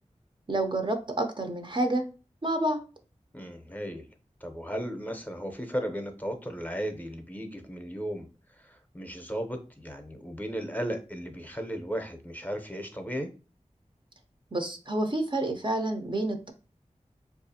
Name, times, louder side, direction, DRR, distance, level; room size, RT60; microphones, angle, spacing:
voice 1, 0.5-2.1 2.4-2.8 14.5-16.5, right 1 dB, 40° right, 5 dB, 0.5 m, -28 dB
voice 2, 3.3-4.1 4.4-8.3 8.5-13.3, equal, 15° left, 5 dB, 0.6 m, -35 dB
4.6 x 2.4 x 2.7 m, 0.34 s
wide cardioid pair, 60°, 13 cm